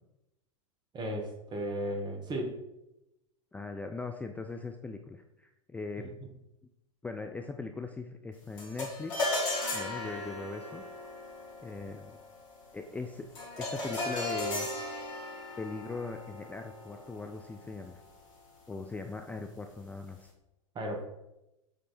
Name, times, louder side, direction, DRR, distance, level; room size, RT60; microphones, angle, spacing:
voice 1, 0.9-2.6 20.7-21.0, right 1 dB, 25° right, 2 dB, 1.5 m, -35 dB
voice 2, 3.5-6.1 7.0-9.3 9.7-10.8 11.6-12.2 12.7-13.3 13.6-14.7 15.6-18.0 18.7-20.3, left 3 dB, 10° left, 5 dB, 0.4 m, -40 dB
sound 1, 8.6-18.1, left 2 dB, 65° left, 2.4 m, -37 dB
7.7 x 3.2 x 4.3 m, 0.91 s
hypercardioid pair, 95°, 17 cm